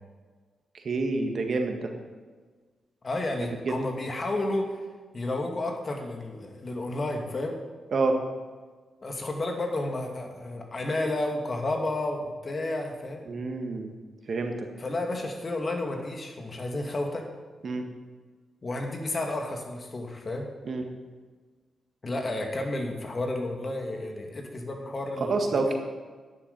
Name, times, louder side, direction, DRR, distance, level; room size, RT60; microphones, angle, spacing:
voice 1, 0.7-1.9 3.4-3.7 7.9-8.2 13.3-13.9 14.3-14.7 17.6-17.9 20.6-20.9 25.3-25.7, right 3 dB, 60° right, 4 dB, 1.7 m, -28 dB
voice 2, 3.0-4.8 5.1-7.6 9.0-13.3 14.8-17.3 18.6-20.5 22.0-25.7, left 2 dB, 45° left, 2 dB, 2.3 m, -31 dB
11.0 x 10.0 x 5.5 m, 1.4 s
supercardioid pair, 45°, 0 cm